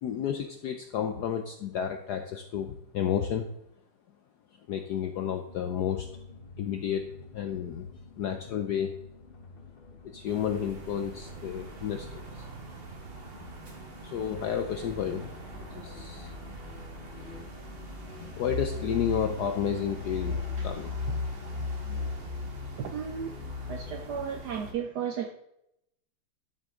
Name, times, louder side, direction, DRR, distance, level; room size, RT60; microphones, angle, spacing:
voice 1, 0.0-3.5 4.7-6.1 6.6-7.9 8.2-9.0 10.1-12.5 14.0-15.3 15.7-16.3 18.4-20.9, left 8 dB, 75° left, 7 dB, 0.9 m, -31 dB
sound 1, 5.5-24.5, left 3 dB, 45° left, 0.7 m, -49 dB
sound 2, 10.3-24.7, left 2 dB, 35° right, 1.1 m, -38 dB
voice 2, 22.8-23.3 23.7-25.3, right 7 dB, 75° right, 6 dB, 0.9 m, -34 dB
11.0 x 6.6 x 3.6 m, 0.82 s
omnidirectional pair, 2.4 m